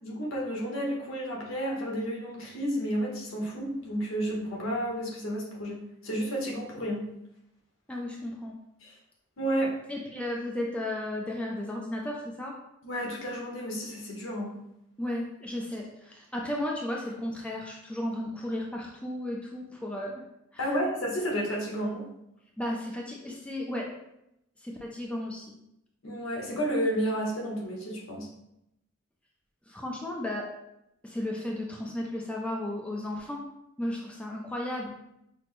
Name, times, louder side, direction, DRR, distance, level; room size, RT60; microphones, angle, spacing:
voice 1, 0.0-7.0 8.8-9.0 9.4-9.7 12.8-14.5 20.6-22.0 26.0-28.3, equal, 80° left, -2 dB, 1.1 m, -31 dB
voice 2, 7.9-8.5 9.9-12.6 15.0-20.2 22.6-23.9 24.6-25.6 29.7-30.5 31.0-33.5 33.8-34.9, left 1 dB, 5° left, -2 dB, 0.4 m, -34 dB
5.9 x 2.0 x 3.1 m, 0.83 s
head